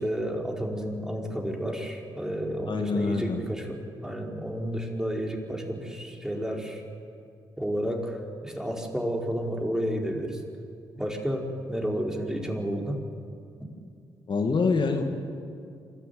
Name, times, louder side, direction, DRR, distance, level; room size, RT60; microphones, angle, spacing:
voice 1, 0.0-3.8 4.0-6.8 7.6-10.4 11.0-13.0, equal, 5° right, 1 dB, 4.7 m, -31 dB
voice 2, 2.7-3.4 14.3-15.0, left 4 dB, 50° left, 3 dB, 2.2 m, -25 dB
28.0 x 12.5 x 9.5 m, 2.4 s
hypercardioid pair, 40°, 10 cm